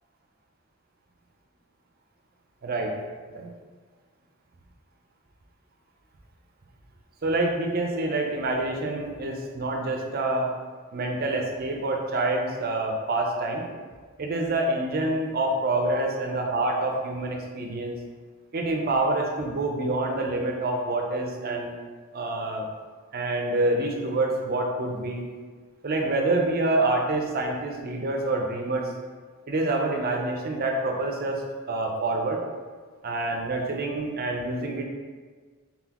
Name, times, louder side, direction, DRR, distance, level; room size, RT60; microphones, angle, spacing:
voice 1, 2.6-2.9 3.3-3.5 7.2-10.5 10.9-13.6 14.2-18.0 18.5-21.7 22.1-22.7 23.1-25.2 25.8-28.9 29.5-32.4 33.0-34.8, right 2 dB, 45° right, 2 dB, 0.5 m, -27 dB
4.1 x 3.7 x 2.9 m, 1.5 s
head